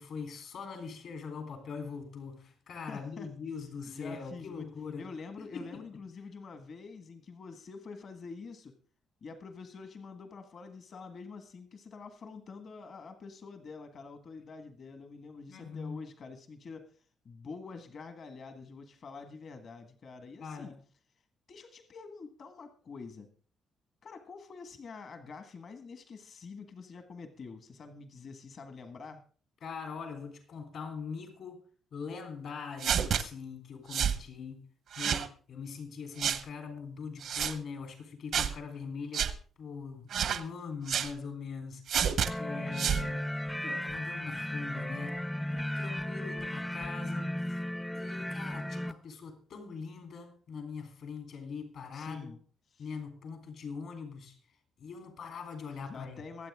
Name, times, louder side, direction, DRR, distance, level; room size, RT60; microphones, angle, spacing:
voice 1, 0.0-5.1 5.4-5.8 15.5-16.0 20.4-20.8 29.6-31.6 31.9-34.6 35.0-39.3 39.6-45.2 45.5-47.6 48.0-52.4 52.8-54.4 54.8-56.2, left 5 dB, 70° left, 3.6 m, -42 dB
voice 2, 2.9-3.3 3.9-4.7 5.0-8.8 9.2-16.9 17.2-20.7 21.5-23.3 24.0-29.2 51.9-52.4 52.7-52.9 55.8-56.5, left 4 dB, 55° left, 1.6 m, -46 dB
sound 1, 32.8-33.2 33.9-34.2 34.9-35.3 36.2-36.4 37.2-37.5 38.3-38.5 39.1-39.3 40.1-40.4 40.9-41.1 41.9-42.3 42.7-43.0, right 8 dB, 70° right, 1.0 m, -29 dB
sound 2, 42.2-48.9, left 1 dB, 5° left, 0.6 m, -35 dB
23.5 x 7.9 x 3.6 m
cardioid pair, 90°, 0 cm